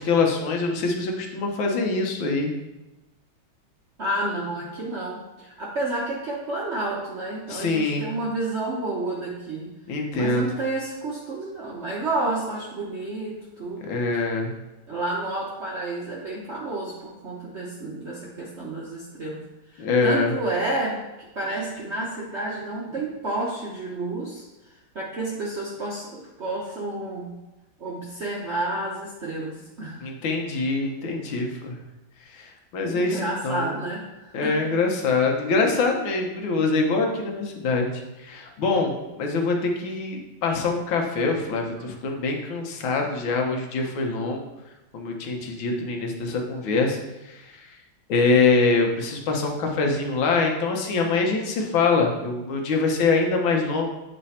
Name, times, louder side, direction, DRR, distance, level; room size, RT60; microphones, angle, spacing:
voice 1, 0.0-2.5 7.5-8.1 9.9-10.5 13.9-14.5 19.8-20.3 30.0-31.8 32.3-33.8 34.3-37.9 38.2-44.4 44.9-47.0 47.3-47.7 48.1-53.9, left 3 dB, 75° left, 1 dB, 1.6 m, -24 dB
voice 2, 4.0-9.7 10.1-13.9 14.9-19.4 19.7-21.0 21.3-24.4 24.9-27.3 27.8-30.0 32.9-34.8, right 2 dB, 55° right, -4 dB, 0.7 m, -30 dB
8.3 x 3.3 x 4.1 m, 1.0 s
omnidirectional pair, 2.2 m